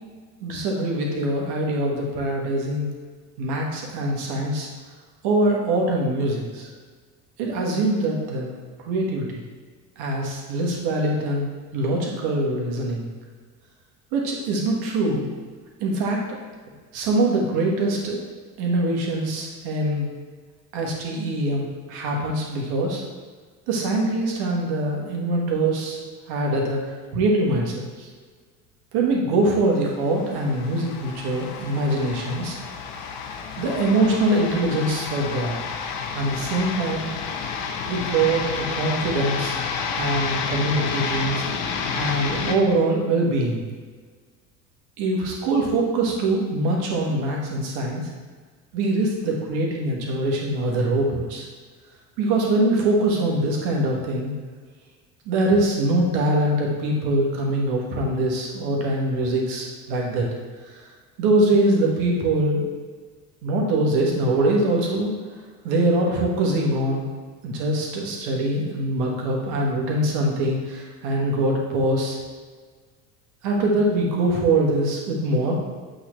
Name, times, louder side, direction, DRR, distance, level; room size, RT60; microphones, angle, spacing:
voice 1, 0.4-2.9 3.4-4.7 5.2-6.7 7.4-8.6 8.8-9.4 10.0-11.5 11.7-13.1 14.1-15.3 15.8-16.4 16.9-18.2 18.6-20.1 20.7-23.0 23.7-26.0 26.3-26.8 27.1-28.1 28.9-32.6 33.6-35.6 36.1-37.1 37.9-39.6 39.9-41.4 41.9-43.6 45.0-48.1 48.7-51.4 52.2-54.3 55.2-60.3 61.2-62.6 63.4-65.1 65.6-67.0 67.4-72.2 73.4-75.6, right 2 dB, 55° right, -1 dB, 1.6 m, -23 dB
sound 1, 30.0-42.5, left 6 dB, 55° left, 0.9 m, -30 dB
7.9 x 3.9 x 3.2 m, 1.5 s
figure-of-eight pair, 70°, 47 cm